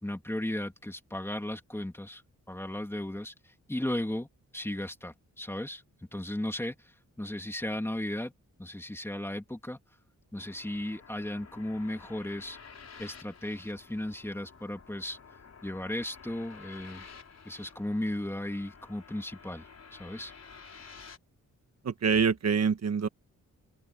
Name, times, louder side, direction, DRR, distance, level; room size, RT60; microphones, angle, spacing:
voice 1, 0.0-2.2 2.5-3.3 3.7-4.3 4.5-5.8 6.1-6.7 7.2-8.3 8.6-9.8 10.3-12.6 13.0-15.2 15.6-17.1 17.4-19.7 19.9-20.3, left 1 dB, 10° left, 2.7 m, -35 dB
sound 1, 10.4-21.2, left 5 dB, 55° left, 4.8 m, -51 dB
voice 2, 21.8-23.1, right 6 dB, 55° right, 1.4 m, -25 dB
wide cardioid pair, 115°, 31 cm